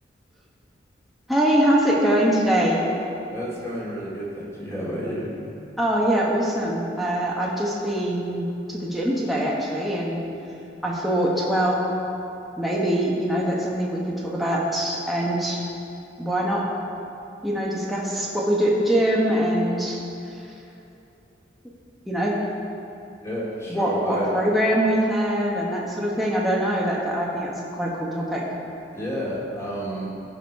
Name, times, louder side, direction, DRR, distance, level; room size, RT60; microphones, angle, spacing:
voice 1, 1.3-2.8 5.8-10.2 10.8-11.9 12.6-15.6 16.2-16.7 17.4-20.0 22.1-22.4 23.7-28.5, right 1 dB, ahead, -5 dB, 1.1 m, -23 dB
voice 2, 3.3-5.3 23.2-24.3 28.9-30.2, equal, 15° left, -6 dB, 2.5 m, -30 dB
15.0 x 5.1 x 5.3 m, 2.8 s
head